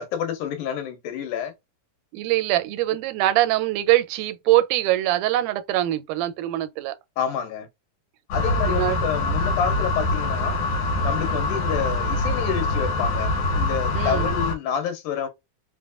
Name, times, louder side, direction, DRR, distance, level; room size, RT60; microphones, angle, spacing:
voice 1, 0.0-1.5 7.2-7.7 8.3-10.6 11.0-15.3, left 8 dB, 85° left, 2.4 m, -28 dB
voice 2, 2.1-7.0 8.6-9.0 13.9-14.3, right 15 dB, 85° right, 2.1 m, -23 dB
sound 1, 8.3-14.6, left 2 dB, 70° left, 2.5 m, -24 dB
5.1 x 2.1 x 2.4 m
omnidirectional pair, 3.6 m